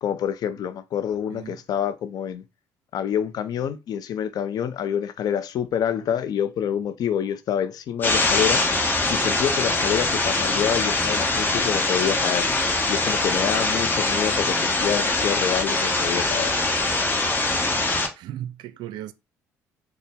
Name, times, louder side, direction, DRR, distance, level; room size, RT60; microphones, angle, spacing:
voice 1, 0.0-2.4 2.9-8.6 9.1-12.5 12.9-16.5, left 9 dB, 55° left, 0.5 m, -27 dB
sound 1, 8.0-18.1, left 2 dB, 25° left, 0.9 m, -23 dB
voice 2, 18.2-19.1, right 12 dB, 65° right, 0.3 m, -35 dB
4.0 x 2.0 x 3.5 m
hypercardioid pair, 55°, 8 cm